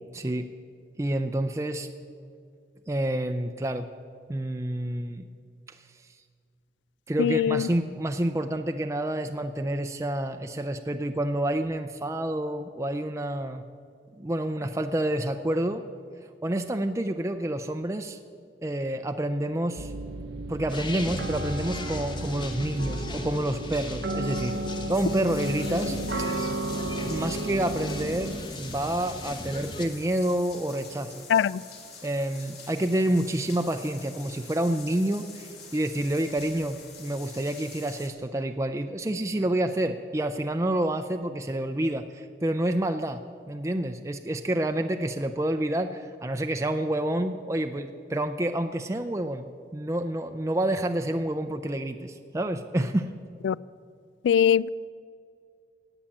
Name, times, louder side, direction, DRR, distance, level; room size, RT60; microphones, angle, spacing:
voice 1, 0.1-0.5 1.0-1.9 2.9-3.9 4.3-5.2 5.7-5.8 7.1-13.6 14.2-15.8 16.4-18.2 18.6-19.9 20.5-24.5 24.9-26.0 27.0-31.3 32.0-43.2 43.5-49.5 49.7-53.1, right 1 dB, 15° right, 6 dB, 0.4 m, -28 dB
voice 2, 7.2-7.7 31.3-31.6 53.4-53.6 54.2-54.7, left 8 dB, 85° left, 21 dB, 0.3 m, -21 dB
sound 1, 19.8-28.4, right 1 dB, 70° right, 0.8 m, -33 dB
sound 2, 20.7-29.9, left 1 dB, 25° left, 1.0 m, -38 dB
sound 3, 23.8-23.9 24.2-38.1, left 5 dB, 60° left, 2.8 m, -46 dB
17.0 x 8.9 x 7.3 m, 2.3 s
head